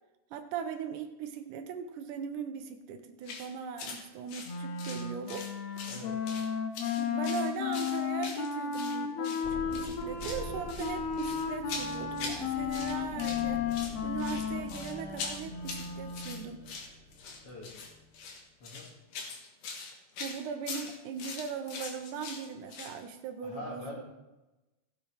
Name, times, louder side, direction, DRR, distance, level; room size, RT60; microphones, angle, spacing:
voice 1, 0.3-5.5 7.0-13.7 14.0-16.7 20.2-24.0, right 7 dB, 80° right, 7 dB, 2.2 m, -39 dB
sound 1, 3.2-3.5 3.8-4.0 4.3-5.5 5.8-6.5 6.7-9.0 9.2-9.4 9.7-10.4 10.7-12.4 12.7-13.4 13.7-23.0, left 4 dB, 90° left, 3.1 m, -42 dB
Wind instrument woodwind instrument, 4.5-16.5, left 7 dB, 70° left, 2.0 m, -34 dB
voice 2, 5.9-6.2 17.4-17.8 18.6-18.9 23.4-24.0, left 1 dB, 50° left, -3 dB, 2.8 m, -43 dB
sound 2, 9.4-18.3, left 2 dB, 20° left, 3.7 m, -46 dB
16.0 x 7.6 x 3.4 m, 1.1 s
omnidirectional pair, 3.7 m